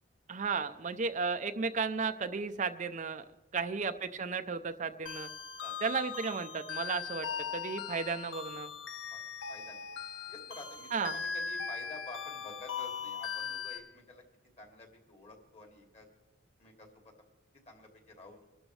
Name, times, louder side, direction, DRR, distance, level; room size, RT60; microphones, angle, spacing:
voice 1, 0.3-3.2 3.5-5.3 5.8-7.3 7.5-8.7 10.9-11.2, right 5 dB, 40° right, 8 dB, 0.5 m, -34 dB
sound 1, 5.1-13.8, left 6 dB, 70° left, 1.6 m, -39 dB
voice 2, 9.1-9.9 10.3-14.2 14.6-16.1 16.6-17.0 17.7-18.4, left 2 dB, 35° left, 2 dB, 2.8 m, -50 dB
25.5 x 12.5 x 3.3 m, 1.1 s
head